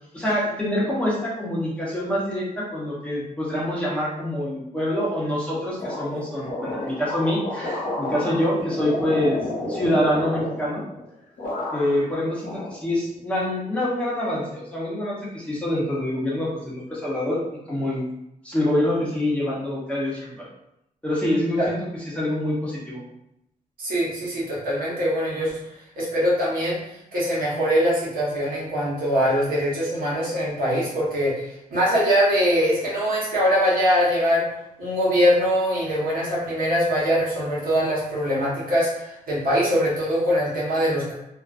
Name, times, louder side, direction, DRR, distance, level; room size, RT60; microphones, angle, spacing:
voice 1, 0.1-9.4 9.7-10.8 11.7-17.4 17.7-18.1 18.4-20.5 21.0-21.8 22.1-23.0, left 1 dB, 10° left, -7 dB, 0.7 m, -25 dB
sound 1, 5.8-11.1 11.4-12.1 12.4-13.3, left 2 dB, 80° left, 0.9 m, -31 dB
voice 2, 23.8-25.6 26.0-26.8 27.1-34.5 34.8-41.1, equal, 85° right, -6 dB, 1.1 m, -22 dB
2.4 x 2.3 x 2.4 m, 0.82 s
wide cardioid pair, 130°, 15 cm